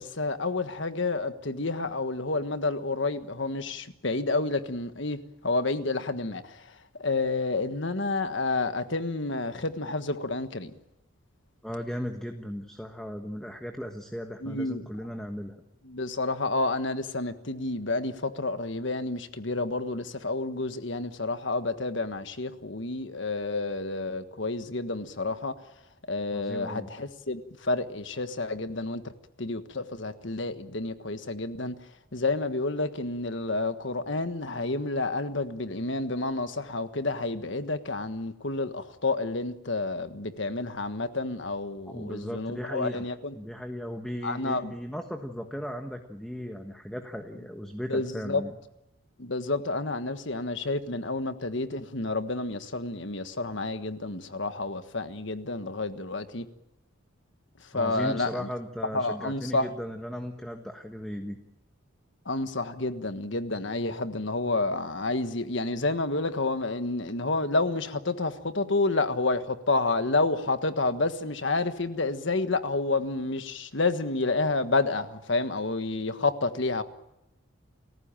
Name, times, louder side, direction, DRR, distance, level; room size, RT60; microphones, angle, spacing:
voice 1, 0.0-6.6 7.0-10.7 14.4-14.9 15.9-25.6 26.1-29.1 29.4-31.7 32.1-43.3 44.2-44.7 47.9-48.4 49.2-56.5 57.7-58.5 58.9-59.7 62.2-76.8, left 3 dB, 60° left, 1.5 m, -29 dB
voice 2, 11.6-15.6 26.3-26.9 41.9-43.1 43.3-48.6 57.7-61.4, equal, 5° left, 1.4 m, -36 dB
30.0 x 15.0 x 9.0 m
head